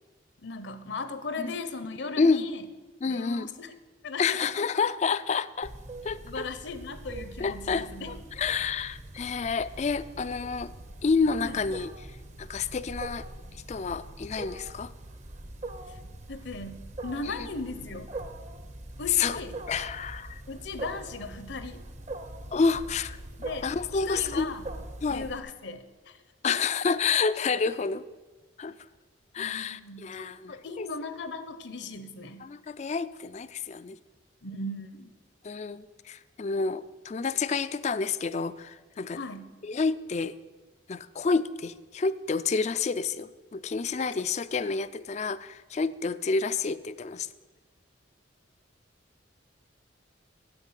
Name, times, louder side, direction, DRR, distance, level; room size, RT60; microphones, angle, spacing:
voice 1, 0.4-2.6 3.1-3.7 4.0-4.6 6.2-8.1 11.4-11.6 15.9-16.0 16.3-18.1 19.0-19.5 20.5-21.8 23.4-23.7 24.1-24.6 25.1-26.2 26.5-26.6 29.4-32.4 34.4-35.1 39.2-39.5, left 3 dB, 65° left, 12 dB, 0.8 m, -37 dB
voice 2, 3.0-3.5 4.2-5.7 6.0-6.5 7.4-10.7 11.0-13.3 13.7-14.9 17.3-17.4 19.1-19.4 19.7-20.4 22.5-23.2 23.6-24.5 25.0-25.3 26.4-28.0 28.6-28.7 29.3-30.9 32.4-34.0 35.4-39.2 39.6-40.4 40.9-47.3, left 5 dB, 35° left, 15 dB, 0.3 m, -29 dB
Wild animals, 5.6-25.4, right 2 dB, 35° right, 0.7 m, -42 dB
9.8 x 8.2 x 7.4 m, 1.3 s
head